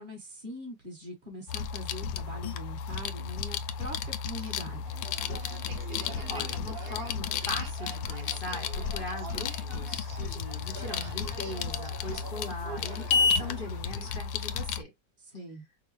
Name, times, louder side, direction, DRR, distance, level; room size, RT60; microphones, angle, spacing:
voice 1, 0.0-4.8 15.2-15.6, equal, 30° right, 1.1 m, -42 dB
sound 1, 1.5-14.8, left 6 dB, 80° left, 1.2 m, -32 dB
sound 2, 4.4-14.2, right 5 dB, 60° right, 0.6 m, -45 dB
voice 2, 6.3-14.9, left 2 dB, 45° left, 0.7 m, -40 dB
5.2 x 2.0 x 3.2 m
omnidirectional pair, 2.0 m